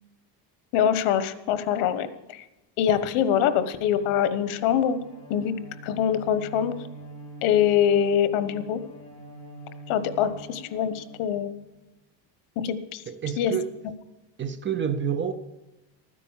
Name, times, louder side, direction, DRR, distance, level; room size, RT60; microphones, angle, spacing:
voice 1, 0.7-2.4 2.8-5.0 5.3-5.5 5.8-6.8 7.4-8.8 9.9-11.5 12.6-13.0 13.4-13.5, left 9 dB, 85° left, 1.3 m, -24 dB
Bowed string instrument, 3.3-11.7, right 1 dB, 10° left, 3.9 m, -45 dB
voice 2, 13.1-13.7 14.4-15.3, right 8 dB, 25° right, 0.6 m, -28 dB
13.5 x 10.0 x 7.3 m
cardioid pair, 175°, 49 cm